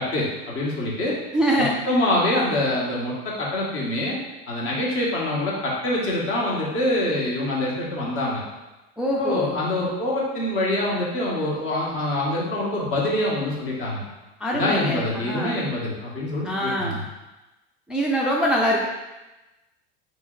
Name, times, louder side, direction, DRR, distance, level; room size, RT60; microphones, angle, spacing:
voice 1, 0.0-1.2 1.6-4.2 4.5-8.4 9.2-14.0 14.5-17.0, left 1 dB, 45° left, -4 dB, 1.5 m, -25 dB
voice 2, 1.3-1.8 9.0-9.6 14.4-15.6 16.4-17.0 17.9-18.9, equal, 5° right, -3 dB, 0.4 m, -24 dB
3.9 x 3.2 x 3.9 m, 1.1 s
supercardioid pair, 110°, 29 cm